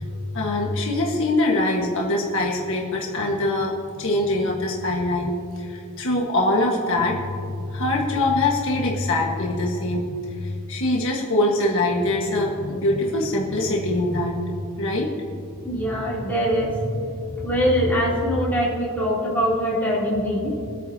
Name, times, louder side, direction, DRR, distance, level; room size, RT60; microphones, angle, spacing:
voice 1, 0.0-15.1, left 2 dB, 60° left, -2 dB, 1.4 m, -23 dB
voice 2, 15.6-20.5, equal, 10° left, -8 dB, 3.1 m, -23 dB
24.0 x 9.1 x 2.8 m, 2.6 s
head